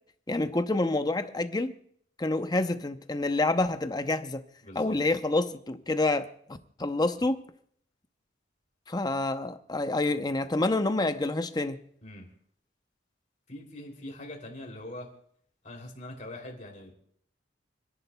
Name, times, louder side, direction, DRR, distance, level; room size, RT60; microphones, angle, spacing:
voice 1, 0.3-1.7 2.2-4.4 4.7-7.4 8.9-11.8, left 2 dB, 20° left, 0.6 m, -28 dB
voice 2, 4.6-5.0 12.0-12.3 13.5-15.1 15.6-16.9, left 1 dB, 40° left, 2.8 m, -42 dB
29.5 x 11.0 x 2.2 m
head